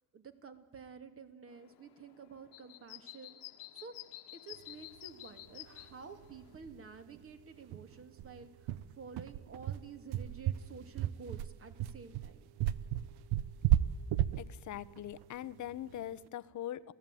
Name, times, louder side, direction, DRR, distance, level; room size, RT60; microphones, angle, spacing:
voice 1, 0.1-3.4 3.7-3.9 4.3-12.5, right 5 dB, 30° right, 8 dB, 2.7 m, -51 dB
sound 1, 1.5-6.6, left 17 dB, 75° left, 1.7 m, -51 dB
sound 2, 5.8-5.9 6.2-6.3 6.6-6.8 7.1-7.2 7.7-16.1, right 12 dB, 65° right, 1.0 m, -33 dB
voice 2, 14.4-16.9, left 12 dB, 45° left, 16 dB, 1.0 m, -42 dB
28.0 x 17.5 x 9.2 m, 1.2 s
cardioid pair, 140°, 41 cm